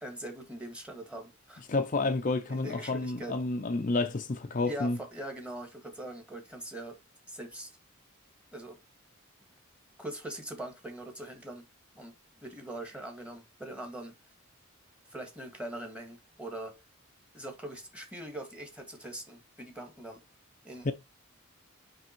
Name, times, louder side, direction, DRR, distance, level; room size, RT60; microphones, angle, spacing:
voice 1, 0.0-1.6 2.5-3.4 4.7-7.0 7.3-7.7 8.5-8.8 10.0-11.6 11.9-12.1 12.4-14.1 15.1-16.7 17.3-20.2 20.6-20.9, right 1 dB, 5° right, 1.8 m, -42 dB
voice 2, 1.7-5.0 20.8-20.9, left 3 dB, 40° left, 0.5 m, -30 dB
9.5 x 3.5 x 4.5 m
head